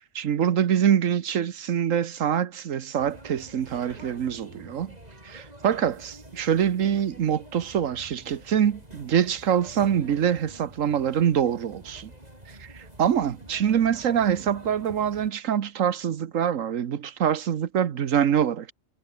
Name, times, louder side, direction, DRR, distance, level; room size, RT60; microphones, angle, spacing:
voice 1, 0.0-5.0 5.2-12.1 12.6-18.7, right 9 dB, 85° right, 1.4 m, -25 dB
sound 1, 3.0-15.3, right 1 dB, 30° right, 6.8 m, -47 dB
omnidirectional pair, 1.3 m